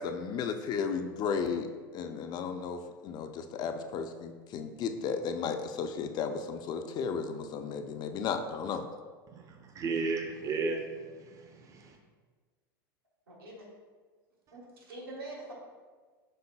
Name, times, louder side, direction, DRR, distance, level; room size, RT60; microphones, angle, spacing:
voice 1, 0.0-1.7 1.9-8.8, left 6 dB, 35° left, 7 dB, 0.3 m, -34 dB
voice 2, 9.3-12.0, right 4 dB, 25° right, 4 dB, 0.5 m, -35 dB
voice 3, 13.3-13.7 14.5-15.5, right 2 dB, 80° right, -3 dB, 1.3 m, -44 dB
5.4 x 3.7 x 2.2 m, 1.5 s
hypercardioid pair, 90°, 12 cm